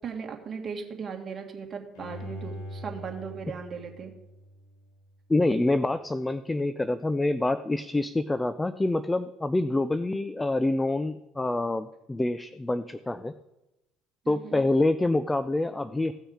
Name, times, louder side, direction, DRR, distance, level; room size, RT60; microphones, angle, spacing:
voice 1, 0.0-4.1 14.2-14.6, right 6 dB, 40° right, 2 dB, 2.4 m, -37 dB
Bowed string instrument, 2.0-5.1 5.5-5.6, equal, 75° left, 3.7 m, -42 dB
voice 2, 5.3-13.3 14.3-16.1, left 2 dB, 15° left, 13 dB, 0.6 m, -26 dB
16.5 x 6.3 x 4.9 m, 0.93 s
hypercardioid pair, 70°, 0 cm